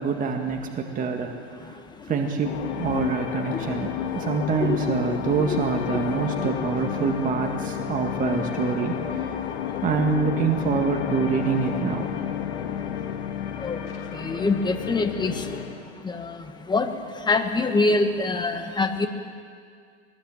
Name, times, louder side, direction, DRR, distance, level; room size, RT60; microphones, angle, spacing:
voice 1, 0.0-1.3 1.7-9.0 9.8-12.0, right 5 dB, 20° right, 2 dB, 2.0 m, -26 dB
sound 1, 2.4-15.8, left 9 dB, 70° left, 2.9 m, -31 dB
voice 2, 14.1-15.6 16.0-16.4 16.7-16.9 17.3-19.1, left 3 dB, 10° left, 6 dB, 1.7 m, -24 dB
22.0 x 20.0 x 9.0 m, 2.2 s
supercardioid pair, 135°, 36 cm